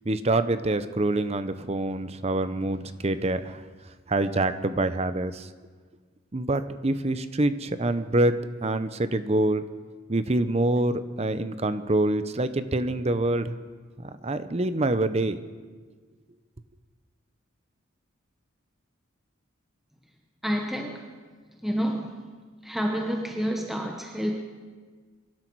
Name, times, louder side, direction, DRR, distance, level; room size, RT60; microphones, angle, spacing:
voice 1, 0.1-3.6 4.1-5.5 6.3-9.6 10.1-13.6 14.0-15.4, right 2 dB, 30° right, 12 dB, 0.7 m, -26 dB
voice 2, 20.4-21.1 21.6-22.2 22.6-24.4, equal, ahead, 1 dB, 1.0 m, -29 dB
23.0 x 12.0 x 4.7 m, 1.5 s
head